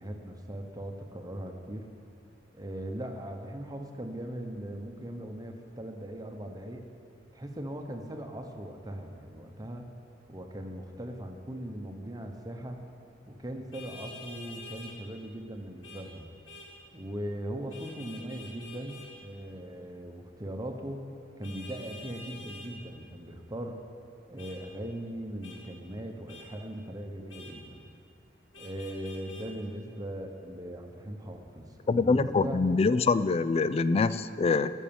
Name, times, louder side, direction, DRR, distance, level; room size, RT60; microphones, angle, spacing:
voice 1, 0.0-1.9 2.5-6.8 7.3-9.9 10.3-12.8 13.3-16.3 16.9-21.1 21.4-23.8 24.3-27.8 28.6-32.6, right 1 dB, 20° right, 3 dB, 1.0 m, -39 dB
Vehicle horn car horn honking, 13.7-15.0 15.8-16.1 16.5-16.7 17.7-19.1 21.4-22.7 24.4-24.6 25.4-25.6 26.3-26.5 27.3-27.5 28.5-29.5, left 2 dB, 90° left, 1.8 m, -47 dB
voice 2, 31.9-34.7, left 4 dB, 30° left, 14 dB, 0.3 m, -25 dB
14.5 x 6.4 x 7.1 m, 2.5 s
head